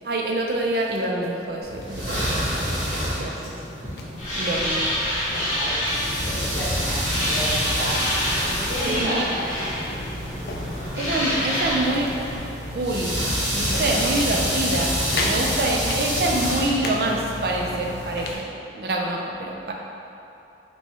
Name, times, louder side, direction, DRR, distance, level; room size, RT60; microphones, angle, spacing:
voice 1, 0.0-2.4 3.2-3.3 4.4-4.9 8.8-9.2 10.9-12.1 12.7-18.5 18.7-19.7, right 2 dB, 60° right, 0 dB, 0.4 m, -26 dB
sound 1, 0.7-1.4 1.7-1.9 2.3-3.3 3.5-3.7 4.0-4.7 5.2-6.0 6.5-7.4 7.9-8.0 8.4-10.7 11.1-11.3 11.7-12.3 12.7-12.8 13.2-14.0 14.4-14.5 14.8-15.4 15.8-17.0 17.3-18.4, left 2 dB, 55° left, 0.4 m, -36 dB
sound 2, 1.6-18.4, equal, 10° left, 1.3 m, -28 dB
sound 3, 4.2-12.4, equal, 40° left, 1.0 m, -28 dB
voice 2, 5.5-9.7, equal, 75° left, -8 dB, 1.3 m, -32 dB
3.4 x 3.1 x 4.1 m, 2.8 s
head